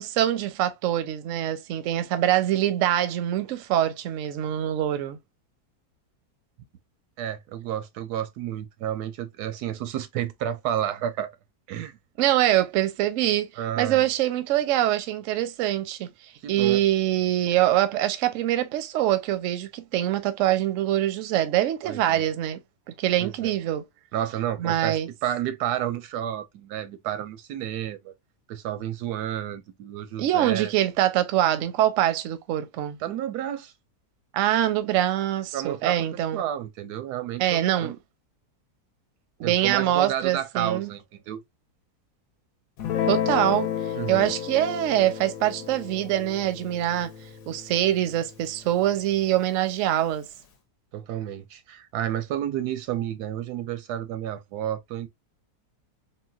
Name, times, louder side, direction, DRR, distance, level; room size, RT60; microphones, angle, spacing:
voice 1, 0.0-5.2 12.2-13.5 13.8-16.1 16.5-22.6 23.0-23.8 24.6-25.1 30.2-33.0 34.3-36.4 37.4-37.9 39.4-40.9 43.1-43.7 44.1-47.1 47.5-50.3, right 12 dB, 70° right, 0.8 m, -24 dB
voice 2, 7.2-11.3 11.7-11.9 13.6-14.1 16.4-16.8 21.8-22.2 23.2-23.5 24.1-28.1 28.5-30.7 33.0-33.7 35.5-36.1 36.3-37.9 39.4-41.4 44.0-44.3 50.9-55.1, right 11 dB, 85° right, 1.2 m, -31 dB
Guitar, 42.8-49.4, left 9 dB, 70° left, 1.0 m, -32 dB
3.8 x 2.2 x 2.3 m
omnidirectional pair, 1.7 m